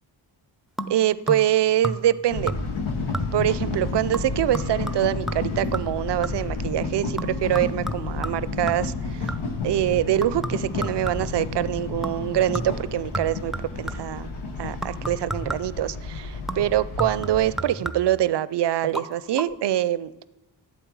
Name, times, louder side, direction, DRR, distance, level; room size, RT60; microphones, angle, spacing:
sound 1, 0.8-1.6 1.8-2.2 2.5-2.9 3.1-3.6 4.1-6.6 7.2-9.6 10.2-11.5 12.0-12.3 12.5-14.2 14.8-15.8 16.5-18.3 18.8-19.1 19.4-19.5, right 1 dB, ahead, 0.6 m, -34 dB
voice 1, 0.9-2.6 3.3-9.3 9.6-14.3 14.6-20.3, right 12 dB, 60° right, 18 dB, 0.5 m, -24 dB
sound 2, 2.3-17.6, left 3 dB, 90° left, 1.2 m, -31 dB
11.0 x 7.8 x 4.7 m, 1.0 s
cardioid pair, 50°, 47 cm